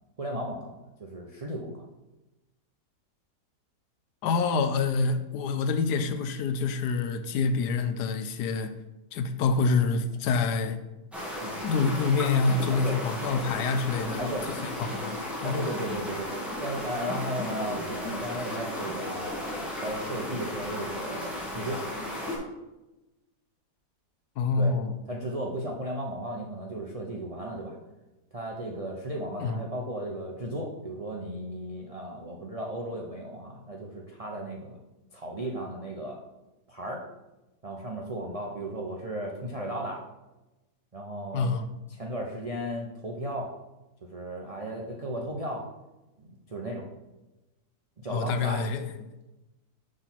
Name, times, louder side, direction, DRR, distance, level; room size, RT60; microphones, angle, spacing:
voice 1, 0.2-0.7 1.0-1.8 11.4-11.6 12.7-13.0 14.2-14.5 15.4-16.3 16.6-21.8 24.6-24.8 25.1-27.8 28.3-34.8 35.1-36.2 36.7-37.0 37.6-40.0 40.9-41.5 42.0-43.5 44.1-45.6 46.2-46.9 48.0-48.6, right 1 dB, 50° right, -1 dB, 0.4 m, -35 dB
voice 2, 4.2-8.7 9.1-10.8 11.6-14.2 14.6-15.7 24.4-25.0 29.4-29.7 41.3-41.7 48.1-49.1, left 4 dB, 80° left, 8 dB, 1.2 m, -27 dB
sound 1, 11.1-22.4, left 1 dB, ahead, 1.4 m, -35 dB
6.4 x 3.9 x 5.8 m, 1.0 s
omnidirectional pair, 1.8 m